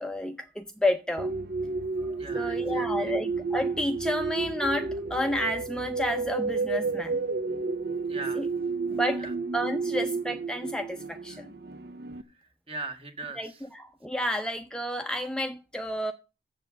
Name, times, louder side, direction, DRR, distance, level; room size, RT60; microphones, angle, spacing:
voice 1, 0.0-1.3 2.1-7.2 8.4-8.5 8.9-9.2 9.5-11.5 13.4-16.1, left 1 dB, 5° left, 0.6 m, -31 dB
sound 1, 1.2-12.2, right 4 dB, 60° right, 0.7 m, -31 dB
voice 2, 2.2-3.1 8.1-8.5 9.2-9.3 11.3-11.4 12.3-13.6, right 2 dB, 30° right, 1.6 m, -40 dB
7.8 x 7.5 x 7.4 m
head